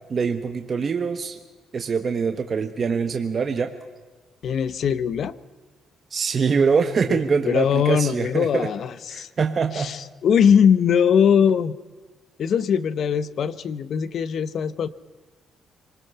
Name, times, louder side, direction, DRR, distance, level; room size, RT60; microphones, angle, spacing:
voice 1, 0.1-1.4 1.7-3.7 6.1-8.7 9.1-9.9, right 5 dB, 45° right, 6 dB, 1.3 m, -24 dB
voice 2, 4.4-5.4 7.1-9.3 9.7-11.7 12.4-14.9, left 7 dB, 60° left, 17 dB, 0.8 m, -21 dB
26.0 x 20.0 x 5.6 m, 1.3 s
cardioid pair, 90°, 0 cm